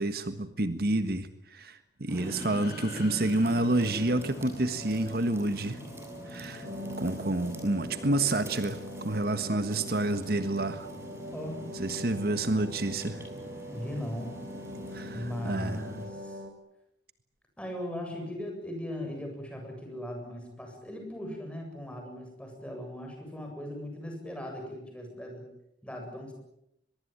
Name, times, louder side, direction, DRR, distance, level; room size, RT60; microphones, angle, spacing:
voice 1, 0.0-5.8 6.3-6.7 7.0-8.8 9.0-10.9 11.7-13.2 14.9-15.8, right 2 dB, 60° right, 10 dB, 1.5 m, -29 dB
sound 1, 2.1-5.0, left 5 dB, 60° left, 7.4 m, -50 dB
sound 2, 2.1-16.1, equal, 15° right, 7.7 m, -43 dB
sound 3, 6.6-16.5, left 1 dB, 75° right, 3.5 m, -43 dB
voice 2, 13.7-14.3 15.1-16.4 17.6-25.5 25.8-26.3, left 1 dB, 5° left, 2 dB, 7.7 m, -38 dB
23.5 x 22.0 x 8.9 m, 0.80 s
head